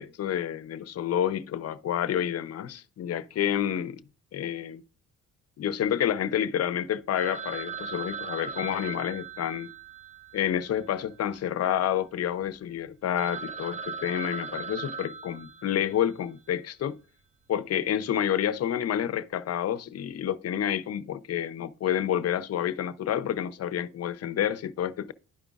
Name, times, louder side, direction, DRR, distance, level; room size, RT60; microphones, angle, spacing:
voice 1, 0.0-4.0 4.3-4.8 5.6-9.7 10.3-17.0 17.5-25.1, left 10 dB, 55° left, 0.7 m, -29 dB
Telephone, 7.2-11.5 11.8-11.9 12.4-12.5 12.9-13.0 13.2-16.1, right 5 dB, 25° right, 0.8 m, -39 dB
11.5 x 5.1 x 2.4 m
cardioid pair, 90°, 30 cm